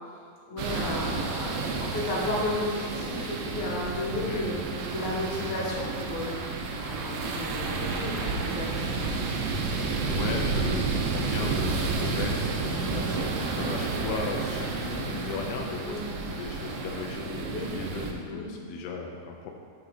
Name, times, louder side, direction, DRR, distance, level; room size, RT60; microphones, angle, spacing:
voice 1, 0.5-4.6 4.9-9.1 15.8-16.0 17.5-17.7 18.3-18.5, left 1 dB, 55° left, -6 dB, 3.2 m, -33 dB
sound 1, 0.6-18.1, right 4 dB, 80° right, 2.5 m, -31 dB
voice 2, 4.3-4.7 10.1-19.5, left 4 dB, 80° left, 1 dB, 3.1 m, -36 dB
9.7 x 5.9 x 4.0 m, 2.2 s
omnidirectional pair, 5.8 m